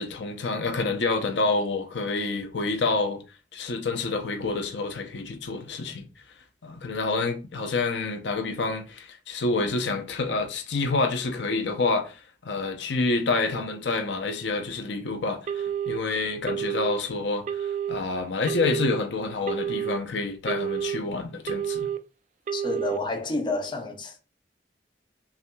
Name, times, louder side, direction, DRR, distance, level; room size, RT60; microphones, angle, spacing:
voice 1, 0.0-3.2 3.5-6.1 6.6-21.9, left 3 dB, 90° left, 0.7 m, -28 dB
Telephone, 15.5-16.0 16.5-17.0 17.5-18.0 18.5-19.0 19.5-20.0 20.5-21.0 21.5-22.0 22.5-23.0, right 9 dB, 45° right, 0.3 m, -29 dB
voice 2, 22.5-24.2, left 2 dB, 25° left, 0.7 m, -29 dB
5.7 x 2.7 x 2.3 m
head